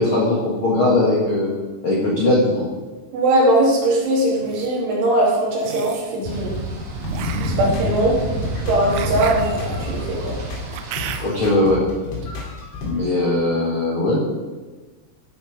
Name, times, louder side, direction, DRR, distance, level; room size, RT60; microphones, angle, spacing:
voice 1, 0.0-1.5 1.8-2.7 11.2-11.8 12.8-14.2, left 2 dB, 75° left, -5 dB, 1.2 m, -19 dB
voice 2, 3.1-6.5 7.4-8.2 8.7-10.4, right 1 dB, 70° right, -4 dB, 5.2 m, -20 dB
sound 1, 4.2-4.7 5.6-6.1 7.1-11.5, right 9 dB, 85° right, 3.5 m, -34 dB
sound 2, 6.2-11.2, right 1 dB, 45° right, 2.5 m, -28 dB
sound 3, 7.0-12.9, left 3 dB, 60° left, 4.2 m, -32 dB
15.5 x 7.2 x 5.1 m, 1.3 s
omnidirectional pair, 5.9 m